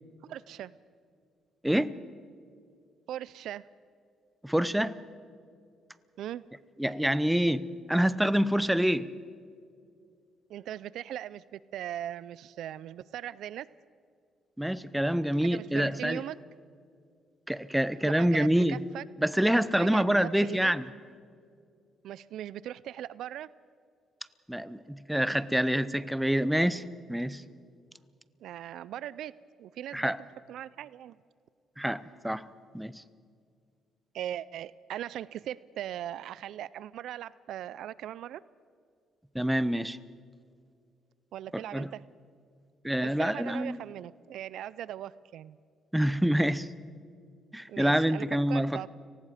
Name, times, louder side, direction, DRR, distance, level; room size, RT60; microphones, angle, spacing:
voice 1, 0.2-0.7 3.1-3.6 6.2-6.4 10.5-13.7 15.4-16.4 18.1-19.0 19.8-20.7 22.0-23.5 28.4-29.3 29.6-30.2 30.5-31.2 34.1-38.4 41.3-42.0 43.0-45.6 47.7-48.9, right 11 dB, 80° right, 0.4 m, -39 dB
voice 2, 4.4-5.0 6.8-9.1 14.6-16.2 17.5-18.8 19.2-20.8 24.5-27.4 29.9-30.2 31.8-32.5 32.7-33.0 39.3-40.0 41.5-41.9 42.8-43.8 45.9-46.7 47.5-48.9, equal, 5° right, 0.7 m, -27 dB
30.0 x 19.0 x 5.0 m
cardioid pair, 95°, 0 cm